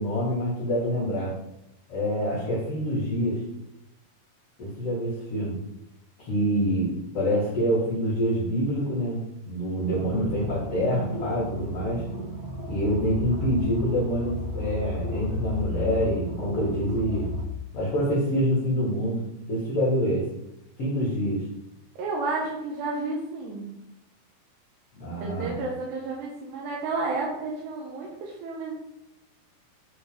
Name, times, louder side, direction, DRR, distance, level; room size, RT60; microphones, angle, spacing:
voice 1, 0.0-1.3 1.9-3.4 4.6-5.6 6.2-9.2 9.5-12.0 12.7-17.3 17.7-19.2 19.5-20.3 20.8-21.4 24.9-25.5, equal, 50° left, -5 dB, 2.1 m, -26 dB
sound 1, 9.9-17.5, left 1 dB, 55° right, 1.9 m, -33 dB
voice 2, 22.0-23.7 25.2-28.7, right 3 dB, 80° right, -2 dB, 3.3 m, -31 dB
8.9 x 4.6 x 5.1 m, 0.86 s
omnidirectional pair, 4.8 m